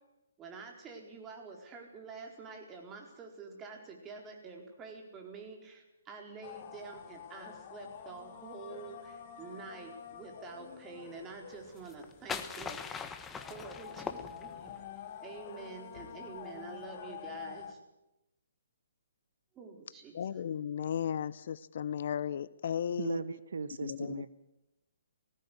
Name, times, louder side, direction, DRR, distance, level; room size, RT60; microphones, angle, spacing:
voice 1, 0.4-13.1 13.5-14.7 15.2-17.8 19.5-20.2, right 4 dB, 20° right, 2 dB, 4.5 m, -47 dB
sound 1, 6.4-17.7, left 8 dB, 40° left, 1.8 m, -48 dB
sound 2, 11.8-14.8, left 6 dB, 10° left, 1.3 m, -41 dB
voice 2, 20.1-23.2 23.8-24.3, left 8 dB, 55° left, 18 dB, 0.8 m, -35 dB
voice 3, 23.0-24.3, right 5 dB, 70° right, 14 dB, 1.1 m, -37 dB
19.5 x 16.0 x 9.8 m, 0.91 s
figure-of-eight pair, 135°, 0 cm